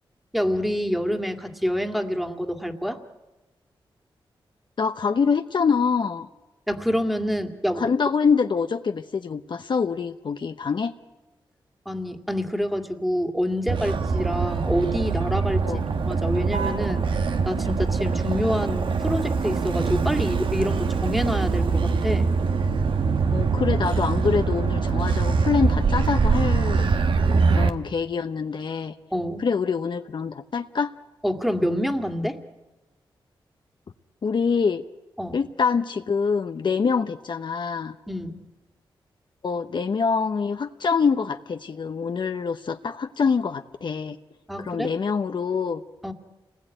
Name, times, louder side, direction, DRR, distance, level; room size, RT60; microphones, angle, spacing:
voice 1, 0.3-3.0 6.7-7.8 11.9-15.7 15.9-17.1 17.5-22.3 29.1-29.4 31.2-32.4 35.2-35.4 38.1-38.4 44.5-44.9 46.0-46.1, equal, ahead, 5 dB, 2.2 m, -27 dB
voice 2, 4.8-6.3 7.8-10.9 15.6-15.9 23.3-26.8 27.3-28.9 29.4-30.9 34.2-34.8 35.3-38.0 39.4-44.2 44.6-45.8, left 5 dB, 60° left, 7 dB, 0.9 m, -25 dB
Motor vehicle (road), 13.7-27.7, right 4 dB, 70° right, 1.2 m, -23 dB
28.0 x 20.0 x 9.1 m, 1.1 s
cardioid pair, 75°, 9 cm